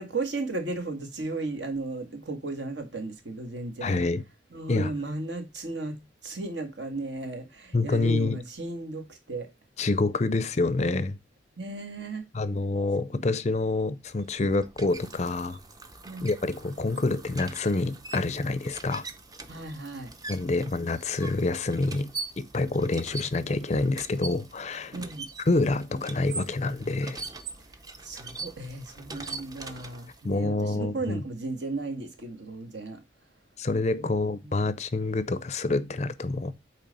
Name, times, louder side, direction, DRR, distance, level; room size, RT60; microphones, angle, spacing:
voice 1, 0.0-4.0 4.5-6.0 6.2-9.5 11.6-12.3 13.1-13.3 16.0-16.3 19.5-20.1 24.9-25.3 28.0-33.0 34.0-34.5, right 2 dB, 70° right, 1.7 m, -35 dB
voice 2, 3.8-4.2 4.7-4.9 7.7-8.4 9.8-11.2 12.3-15.6 16.2-19.0 20.3-25.0 25.5-27.2 30.2-31.2 33.6-36.5, left 3 dB, 35° left, 0.5 m, -27 dB
sound 1, 14.1-30.3, right 3 dB, 20° right, 0.6 m, -42 dB
8.6 x 3.2 x 5.2 m
head